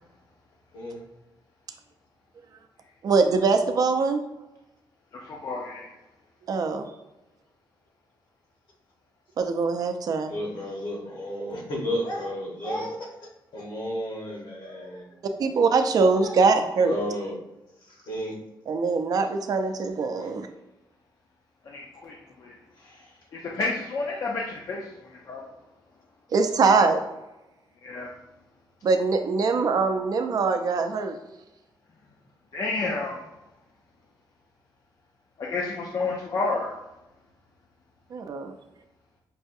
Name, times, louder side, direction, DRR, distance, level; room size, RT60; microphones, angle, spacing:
voice 1, 3.0-4.2 6.5-6.9 9.4-10.3 15.4-16.9 18.7-20.5 26.3-27.0 28.8-31.2 38.1-38.5, right 4 dB, 50° right, 7 dB, 0.4 m, -23 dB
voice 2, 5.3-5.9 21.7-22.1 22.4-22.5 23.4-24.8 25.3-25.4 27.8-28.1 32.5-33.2 35.4-36.7, left 3 dB, 45° left, -1 dB, 0.5 m, -30 dB
voice 3, 10.3-13.1 13.5-15.1 16.1-16.3 16.8-17.4 17.8-18.4 20.2-20.3 22.8-23.2, equal, 70° left, -2 dB, 1.3 m, -33 dB
5.4 x 2.4 x 2.6 m, 0.97 s
wide cardioid pair, 150°, 8 cm